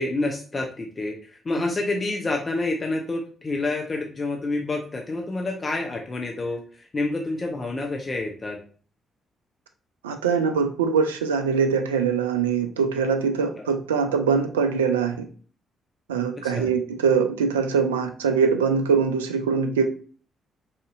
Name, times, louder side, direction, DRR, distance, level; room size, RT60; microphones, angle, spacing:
voice 1, 0.0-8.6 13.6-13.7 16.5-16.7, left 2 dB, 35° left, 1 dB, 0.6 m, -28 dB
voice 2, 10.0-15.2 16.1-19.8, right 6 dB, 85° right, 6 dB, 0.3 m, -23 dB
4.1 x 2.7 x 2.4 m, 0.42 s
hypercardioid pair, 40°, 0 cm